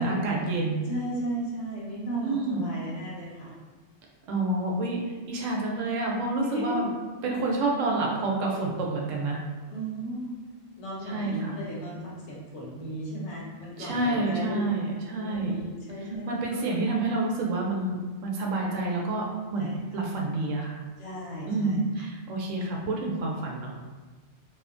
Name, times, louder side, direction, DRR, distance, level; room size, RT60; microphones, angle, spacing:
voice 1, 0.0-0.8 2.2-2.7 4.3-6.9 7.2-9.4 11.1-11.5 13.8-15.6 16.3-19.2 19.5-20.8 21.4-23.7, right 2 dB, 85° right, -2 dB, 1.0 m, -28 dB
voice 2, 0.9-3.5 6.4-6.8 9.7-10.4 10.8-14.6 15.1-16.6 19.6-19.8 21.0-21.8, right 1 dB, 65° left, -4 dB, 1.0 m, -35 dB
2.8 x 2.1 x 2.5 m, 1.3 s
omnidirectional pair, 1.3 m